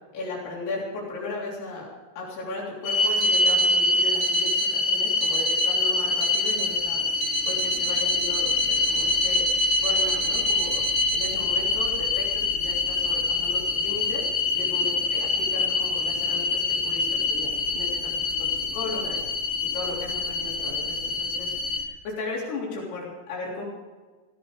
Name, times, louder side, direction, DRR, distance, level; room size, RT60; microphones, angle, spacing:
voice 1, 0.1-1.9 2.2-10.8 11.1-14.3 14.5-19.5 19.7-23.7, left 3 dB, 80° left, -5 dB, 5.6 m, -36 dB
sound 1, 2.8-21.8, left 3 dB, 60° left, 1.6 m, -25 dB
Alarm, 3.2-3.8 4.2-4.8 5.2-5.8 6.2-6.8 7.2-11.3, right 13 dB, 80° right, 3.0 m, -32 dB
16.5 x 15.5 x 4.9 m, 1.4 s
omnidirectional pair, 4.6 m